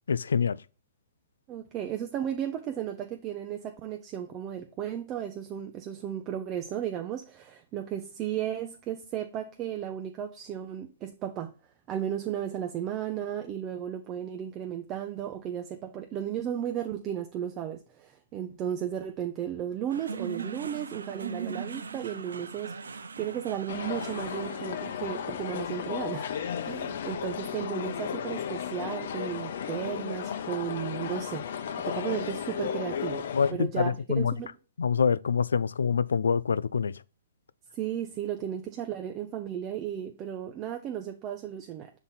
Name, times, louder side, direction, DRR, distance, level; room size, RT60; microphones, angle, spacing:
voice 1, 0.1-0.6 33.3-34.3 34.8-36.9, left 6 dB, 85° left, 0.3 m, -25 dB
voice 2, 1.5-11.5 11.9-26.3 26.6-31.5 31.8-34.6 37.7-41.9, right 10 dB, 30° right, 0.6 m, -34 dB
sound 1, 19.9-28.3, right 5 dB, 85° right, 0.5 m, -41 dB
sound 2, 23.7-33.5, left 8 dB, 65° left, 0.7 m, -34 dB
5.9 x 3.9 x 4.1 m
hypercardioid pair, 135°, 0 cm